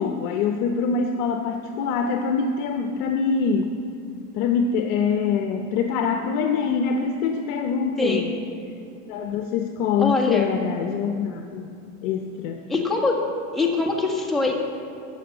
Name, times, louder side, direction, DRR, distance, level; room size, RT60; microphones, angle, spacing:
voice 1, 0.0-3.8 4.3-8.3 9.1-11.8 12.0-12.6, left 5 dB, 60° left, 4 dB, 0.9 m, -24 dB
voice 2, 8.0-8.3 10.0-10.6 12.7-13.2 13.5-14.5, left 3 dB, ahead, -2 dB, 1.5 m, -23 dB
13.5 x 7.1 x 7.8 m, 2.6 s
supercardioid pair, 140°, 46 cm